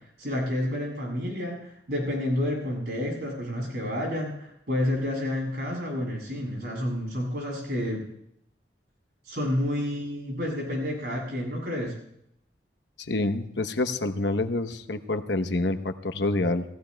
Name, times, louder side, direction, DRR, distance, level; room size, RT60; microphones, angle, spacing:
voice 1, 0.2-8.0 9.2-11.9, left 1 dB, 65° right, -1 dB, 7.8 m, -29 dB
voice 2, 13.1-16.6, left 2 dB, 80° left, 9 dB, 0.9 m, -27 dB
29.5 x 17.0 x 2.3 m, 0.75 s
head